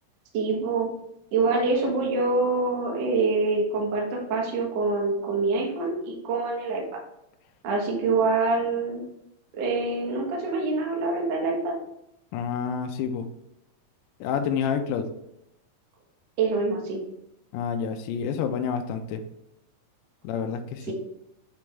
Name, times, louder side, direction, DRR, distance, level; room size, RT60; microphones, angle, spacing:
voice 1, 0.3-0.9 1.3-6.8 7.6-9.1 9.5-11.7 16.4-17.0 20.9-21.0, right 3 dB, 60° right, -1 dB, 2.0 m, -25 dB
voice 2, 12.3-13.3 14.2-15.1 17.5-19.2 20.2-20.9, left 7 dB, 80° left, 5 dB, 2.1 m, -28 dB
8.5 x 3.4 x 3.2 m, 0.82 s
omnidirectional pair, 4.0 m